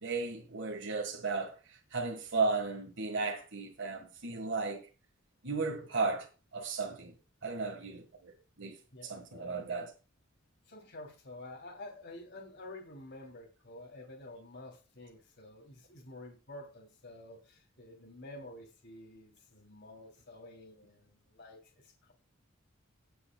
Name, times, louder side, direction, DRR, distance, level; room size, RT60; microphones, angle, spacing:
voice 1, 0.0-4.8 5.4-7.1 7.4-8.7 9.0-9.9, right 4 dB, 60° right, 1.6 m, -35 dB
voice 2, 8.9-9.6 10.7-22.1, left 2 dB, 55° left, 2.9 m, -50 dB
18.5 x 6.8 x 2.3 m
head